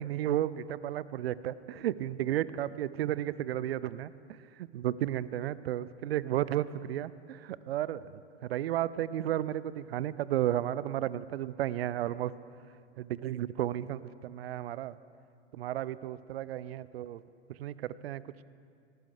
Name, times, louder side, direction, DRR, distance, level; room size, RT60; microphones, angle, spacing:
voice 1, 0.0-12.3 13.0-15.0 15.5-17.2 17.5-18.3, right 12 dB, 60° right, 18 dB, 0.5 m, -33 dB
18.5 x 15.0 x 3.5 m, 2.4 s
figure-of-eight pair, 95°, 34 cm